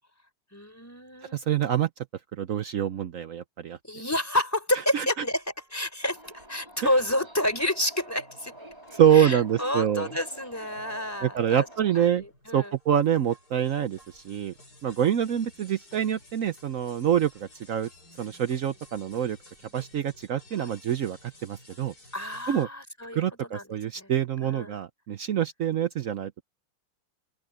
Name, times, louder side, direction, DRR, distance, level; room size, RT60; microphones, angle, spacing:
voice 1, 0.5-1.5 3.8-5.4 5.7-8.5 9.1-11.7 11.9-12.7 22.1-23.2 23.5-23.6 24.0-24.1 24.4-24.7, left 1 dB, 5° left, 3.9 m, -29 dB
voice 2, 1.3-1.9 2.4-3.8 4.9-5.1 6.8-6.9 8.9-10.1 11.2-12.2 12.5-14.5 14.8-17.9 18.2-19.4 19.7-21.9 22.5-22.7 23.1-26.4, right 9 dB, 80° right, 0.7 m, -26 dB
sound 1, 5.5-7.8 8.2-22.6, left 2 dB, 45° left, 7.2 m, -55 dB
Subway metro underground, 6.0-12.0, right 1 dB, 10° right, 4.4 m, -47 dB
open air
omnidirectional pair, 2.3 m